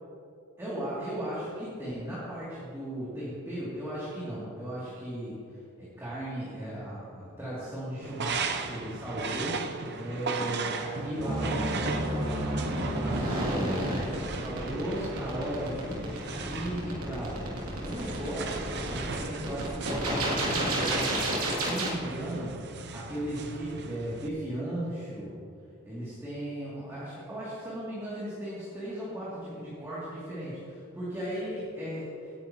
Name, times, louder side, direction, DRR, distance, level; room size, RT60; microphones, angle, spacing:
voice 1, 0.6-5.3 5.8-21.1 21.5-22.5 22.9-25.4 25.8-32.3, right 1 dB, 15° right, -10 dB, 2.6 m, -36 dB
sound 1, 8.0-24.3, right 4 dB, 50° right, 0.7 m, -37 dB
sound 2, 11.2-21.9, right 1 dB, 85° right, 2.6 m, -30 dB
18.0 x 9.4 x 3.0 m, 2.4 s
head